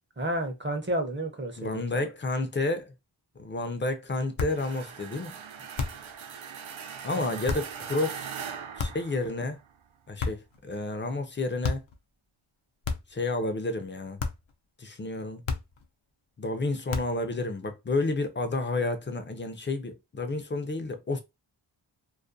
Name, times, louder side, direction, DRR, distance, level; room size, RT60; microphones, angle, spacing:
voice 1, 0.2-2.1 7.2-7.4, right 1 dB, 25° right, 0.6 m, -31 dB
voice 2, 1.6-2.9 3.4-5.4 7.0-8.3 8.8-9.6 10.1-11.8 13.1-14.2 14.8-15.4 16.4-21.2, left 2 dB, 25° left, 0.4 m, -30 dB
sound 1, 4.4-4.7 5.8-6.1 7.5-7.7 8.8-9.2 10.2-10.6 11.6-12.0 12.8-13.2 14.2-14.5 15.5-15.9 16.9-17.3, left 5 dB, 75° left, 0.6 m, -32 dB
sound 2, 4.5-9.7, right 7 dB, 90° right, 0.5 m, -41 dB
2.4 x 2.1 x 2.5 m
wide cardioid pair, 90°, 46 cm